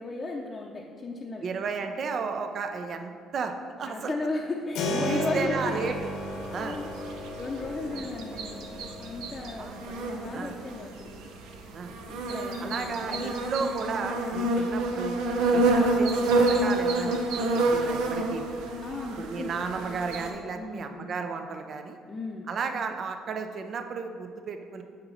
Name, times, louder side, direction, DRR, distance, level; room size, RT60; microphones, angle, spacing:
voice 1, 0.0-1.4 3.8-5.7 6.5-8.6 9.0-11.1 12.1-13.6 14.3-14.7 18.8-19.6 20.5-21.1 22.1-22.5, left 3 dB, 30° left, -2 dB, 0.6 m, -36 dB
voice 2, 1.4-4.1 4.8-6.1 6.5-6.8 7.9-8.0 9.6-9.8 10.3-10.5 11.7-11.9 12.6-15.2 15.5-18.6 19.2-22.0 22.5-24.8, right 5 dB, 50° right, 6 dB, 0.5 m, -34 dB
Keyboard (musical), 4.7-15.4, left 1 dB, 80° left, 0.9 m, -37 dB
sound 1, 5.7-20.3, right 2 dB, 85° right, 0.7 m, -28 dB
8.7 x 3.0 x 5.5 m, 2.1 s
cardioid pair, 95°, 0 cm